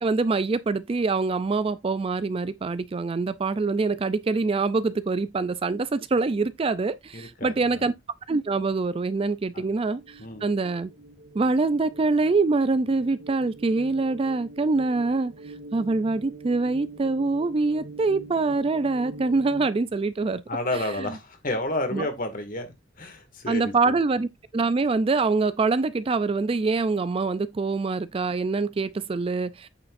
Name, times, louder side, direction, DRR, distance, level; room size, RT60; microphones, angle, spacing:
voice 1, 0.0-7.9 8.3-10.9 11.3-15.3 15.7-20.4 20.7-21.1 21.9-22.1 23.5-24.3 24.5-29.7, right 3 dB, 30° right, 0.4 m, -25 dB
voice 2, 7.1-7.9 9.5-9.6 10.2-10.4 20.5-22.7 23.0-24.0, left 1 dB, 45° left, 2.0 m, -31 dB
sound 1, 9.9-19.7, right 3 dB, 80° right, 1.3 m, -44 dB
8.9 x 6.7 x 2.5 m
head